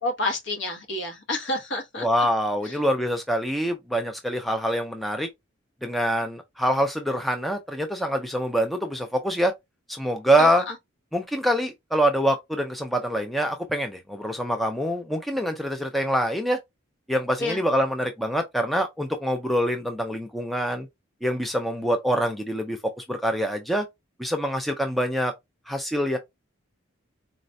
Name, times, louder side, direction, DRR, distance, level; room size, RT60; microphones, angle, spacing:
voice 1, 0.0-2.1 2.6-2.7 10.4-10.7 17.4-17.6, left 2 dB, 60° left, 1.0 m, -29 dB
voice 2, 2.0-5.3 5.8-9.5 9.9-10.6 11.1-16.6 17.1-20.9 21.2-23.9 24.2-25.3 25.7-26.2, equal, ahead, 0.3 m, -25 dB
4.0 x 2.1 x 2.5 m
head